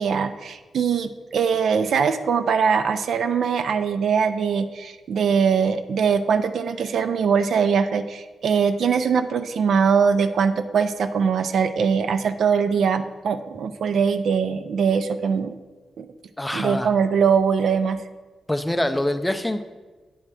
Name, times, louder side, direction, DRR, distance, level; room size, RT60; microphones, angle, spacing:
voice 1, 0.0-15.6 16.0-16.1 16.5-18.0, right 6 dB, 65° right, 10 dB, 0.4 m, -22 dB
voice 2, 16.4-16.9 18.5-19.6, left 1 dB, 10° left, 8 dB, 0.4 m, -24 dB
8.6 x 3.2 x 6.1 m, 1.3 s
wide cardioid pair, 130°, 0 cm